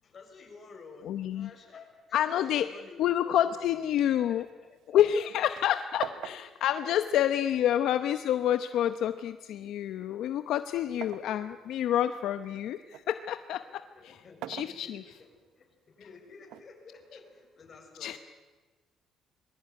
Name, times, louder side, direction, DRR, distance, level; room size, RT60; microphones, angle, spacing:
voice 1, 0.0-5.3 6.0-6.4 6.9-7.9 10.9-11.5 12.5-12.6 13.6-18.2, left 4 dB, 35° left, 2 dB, 6.8 m, -51 dB
voice 2, 1.0-1.5 2.1-2.7 3.0-4.4 4.9-14.2 14.5-15.0 18.0-18.2, left 11 dB, 70° left, 10 dB, 0.9 m, -28 dB
sound 1, 4.4-5.7 6.0-8.0 8.8-11.4 11.9-13.1 14.2-15.3 16.4-17.5, right 13 dB, 90° right, 0.9 m, -45 dB
26.5 x 21.5 x 9.5 m, 1.3 s
cardioid pair, 140°, 0 cm